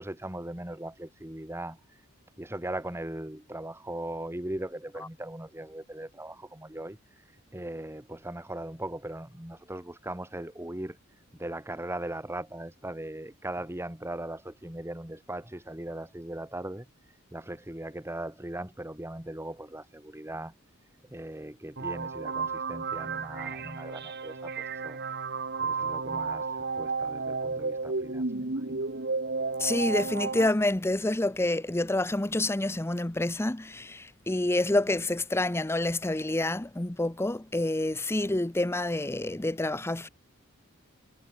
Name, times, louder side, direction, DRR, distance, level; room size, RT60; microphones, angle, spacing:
voice 1, 0.0-2.0 2.4-11.0 11.3-20.5 21.1-25.0 25.6-28.9, right 1 dB, 15° right, 2.0 m, -39 dB
sound 1, 21.8-30.5, right 4 dB, 55° right, 1.9 m, -32 dB
voice 2, 29.6-40.1, left 2 dB, 10° left, 0.7 m, -28 dB
head